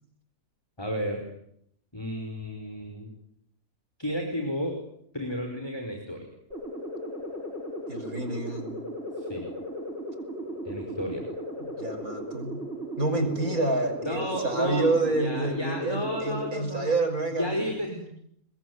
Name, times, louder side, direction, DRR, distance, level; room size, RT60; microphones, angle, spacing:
voice 1, 0.8-1.2 1.9-3.1 4.0-4.8 5.1-6.3 9.2-9.4 10.6-11.2 14.0-14.9 15.1-17.0 17.3-18.1, equal, 15° left, 3 dB, 5.1 m, -32 dB
sound 1, 6.5-16.5, equal, 45° right, 7.9 m, -36 dB
voice 2, 7.9-8.8 11.6-12.7 13.0-17.7, right 2 dB, 75° right, 6 dB, 6.3 m, -28 dB
28.5 x 21.5 x 9.7 m, 0.72 s
omnidirectional pair, 1.5 m